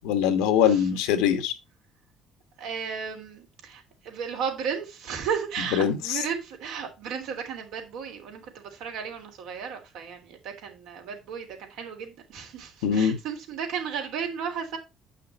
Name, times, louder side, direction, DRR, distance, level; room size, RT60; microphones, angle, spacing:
voice 1, 0.0-1.5 5.7-6.2 12.8-13.2, left 8 dB, 90° left, 1.3 m, -23 dB
voice 2, 0.6-1.0 2.6-14.8, right 7 dB, 80° right, 3.3 m, -34 dB
8.7 x 5.8 x 4.4 m
supercardioid pair, 75°, 0 cm